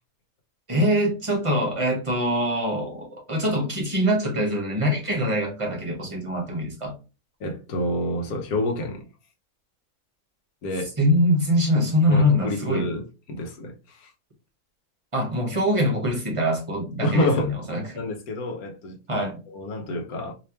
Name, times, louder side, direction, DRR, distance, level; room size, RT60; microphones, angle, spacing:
voice 1, 0.7-6.9 11.0-12.9 15.1-18.0 19.1-19.4, equal, 25° right, 1.3 m, -23 dB
voice 2, 7.4-9.1 10.6-10.9 12.1-14.1 17.0-17.5 17.9-20.3, left 1 dB, 85° left, 1.4 m, -28 dB
3.3 x 3.2 x 2.8 m
omnidirectional pair, 1.5 m